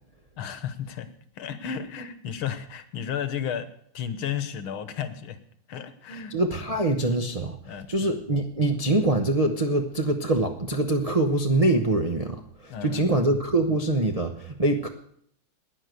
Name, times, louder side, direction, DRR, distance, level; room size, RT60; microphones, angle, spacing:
voice 1, 0.4-1.1 1.4-3.7 3.9-5.4 5.7-6.4 7.6-8.2 12.7-13.2, left 8 dB, 75° left, 11 dB, 1.9 m, -33 dB
voice 2, 6.3-14.9, right 2 dB, 65° right, 3 dB, 0.3 m, -24 dB
11.0 x 10.0 x 8.0 m, 0.69 s
omnidirectional pair, 2.4 m